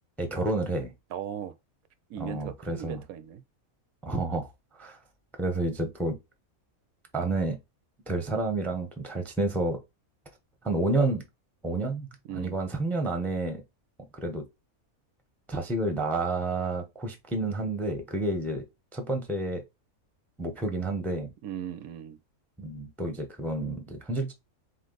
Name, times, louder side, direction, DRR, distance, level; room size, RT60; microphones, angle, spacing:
voice 1, 0.2-0.9 2.2-3.0 4.0-5.0 5.4-6.2 7.1-7.6 8.1-9.8 10.6-11.2 11.6-12.1 12.3-13.6 14.1-14.4 15.5-18.6 18.9-19.6 20.4-21.3 22.6-24.3, right 2 dB, ahead, 0.5 m, -30 dB
voice 2, 1.1-1.5 2.1-3.4 12.3-12.6 21.4-22.2, right 10 dB, 80° right, 1.0 m, -38 dB
4.0 x 3.2 x 3.9 m
omnidirectional pair, 1.5 m